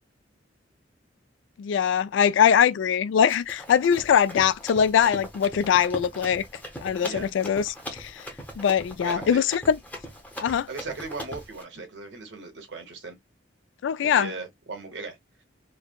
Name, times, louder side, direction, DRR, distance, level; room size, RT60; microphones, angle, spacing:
voice 1, 1.6-6.4 6.8-8.2 8.6-9.8 10.4-10.7 13.8-14.3, left 8 dB, 85° left, 0.3 m, -22 dB
Run, 3.3-11.6, equal, 10° left, 0.7 m, -40 dB
voice 2, 9.0-9.4 10.7-13.2 14.0-15.2, right 3 dB, 75° right, 1.1 m, -37 dB
3.2 x 2.1 x 2.2 m
head